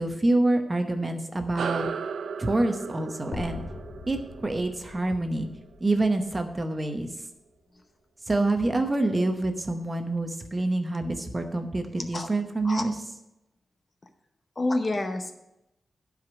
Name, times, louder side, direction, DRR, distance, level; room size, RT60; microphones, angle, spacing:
voice 1, 0.0-1.9 2.4-3.6 4.1-5.5 5.8-7.1 8.3-13.0, right 2 dB, 20° right, 6 dB, 0.8 m, -26 dB
sound 1, 1.6-6.4, right 6 dB, 85° right, 0.4 m, -36 dB
sound 2, 3.3-7.5, left 3 dB, 50° left, 1.2 m, -42 dB
voice 2, 14.6-15.3, left 2 dB, 25° left, 6 dB, 0.7 m, -28 dB
12.0 x 5.0 x 6.1 m, 0.88 s
wide cardioid pair, 170°, 0 cm